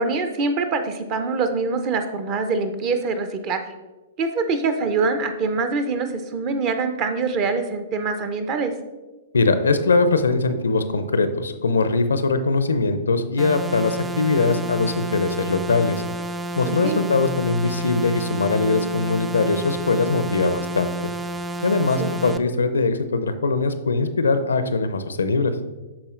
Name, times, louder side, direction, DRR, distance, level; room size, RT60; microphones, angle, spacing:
voice 1, 0.0-3.6 4.2-8.7 16.7-17.0 22.0-22.1, right 4 dB, 35° right, 8 dB, 0.7 m, -24 dB
voice 2, 9.3-16.0 16.6-20.9 21.6-25.5, left 3 dB, 75° left, 10 dB, 0.5 m, -21 dB
sound 1, 13.4-22.4, right 1 dB, 10° right, 0.4 m, -30 dB
12.0 x 4.2 x 2.5 m, 1.2 s
figure-of-eight pair, 110°, 0 cm